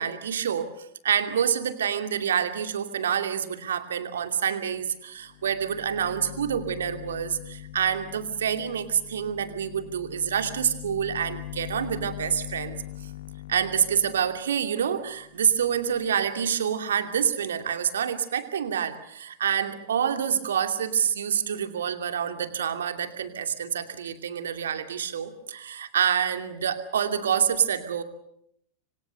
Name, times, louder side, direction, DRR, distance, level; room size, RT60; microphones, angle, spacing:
voice 1, 0.0-13.1 13.5-28.0, right 8 dB, 65° right, 8 dB, 2.6 m, -27 dB
sound 1, 4.8-4.9 5.2-16.3, left 11 dB, 60° left, 1.7 m, -42 dB
27.0 x 25.5 x 6.8 m, 0.73 s
figure-of-eight pair, 90°, 0 cm